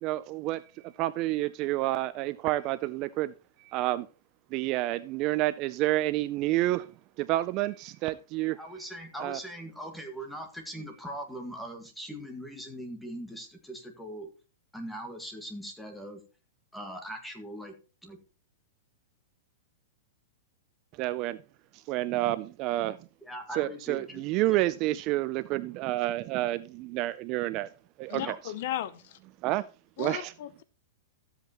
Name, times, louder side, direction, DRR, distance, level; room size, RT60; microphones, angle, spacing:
voice 1, 0.0-3.3 3.6-4.1 4.5-6.9 7.2-8.6 9.2-9.4 21.0-21.4 21.7-23.0 23.6-27.7 28.0-28.3 29.4-29.6 30.0-30.3, right 17 dB, 30° right, 0.4 m, -29 dB
voice 2, 8.5-14.3 14.7-16.2 16.7-17.7 18.0-18.2 23.2-24.2 24.5-24.6 28.2-28.4, right 1 dB, ahead, 1.7 m, -40 dB
voice 3, 28.1-29.2 30.0-30.6, left 12 dB, 45° left, 0.6 m, -35 dB
13.5 x 8.0 x 2.9 m
supercardioid pair, 170°, 0 cm